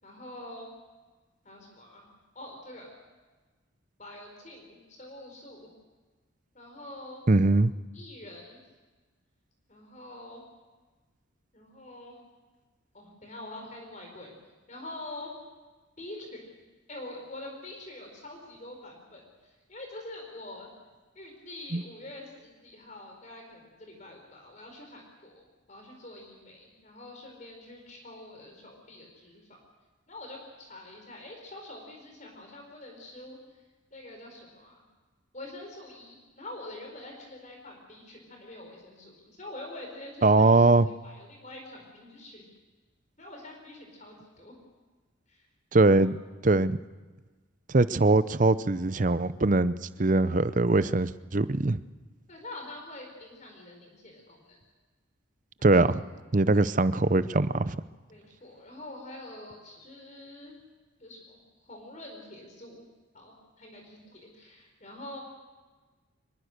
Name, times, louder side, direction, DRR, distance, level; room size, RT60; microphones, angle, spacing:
voice 1, 0.0-0.7 1.4-2.1 2.3-2.9 4.0-5.7 6.5-7.2 7.9-8.6 9.7-10.4 11.5-12.2 12.9-14.3 14.7-15.3 16.0-16.5 16.9-20.7 21.1-29.4 30.1-33.4 33.9-34.8 35.3-42.4 43.2-44.6 45.3-45.5 45.9-46.1 52.3-54.6 55.6-56.2 58.1-60.5 61.0-62.8 63.1-65.2, left 1 dB, 35° left, 2 dB, 4.7 m, -45 dB
voice 2, 7.3-7.7 21.7-21.8 40.2-40.9 45.7-46.2 46.4-46.8 47.7-49.7 50.0-51.8 55.6-56.0 56.3-57.8, right 2 dB, 40° right, 15 dB, 0.6 m, -22 dB
24.5 x 22.5 x 6.7 m, 1.3 s
head